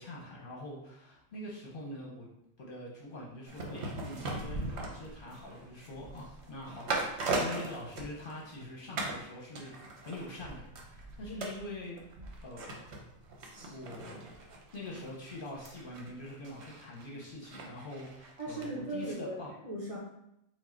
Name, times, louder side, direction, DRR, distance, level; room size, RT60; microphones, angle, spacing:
voice 1, 0.0-2.3 2.6-9.7 10.0-12.0 12.4-12.9 13.7-14.2 14.7-19.5, left 1 dB, 50° left, -2 dB, 0.8 m, -44 dB
sound 1, 3.5-8.6 9.0-9.2 9.6-18.7 19.0-19.1, right 3 dB, 65° right, 1.0 m, -40 dB
voice 2, 18.4-19.4 19.6-20.0, right 2 dB, 30° right, -5 dB, 0.9 m, -37 dB
4.6 x 2.2 x 4.4 m, 0.81 s
omnidirectional pair, 1.3 m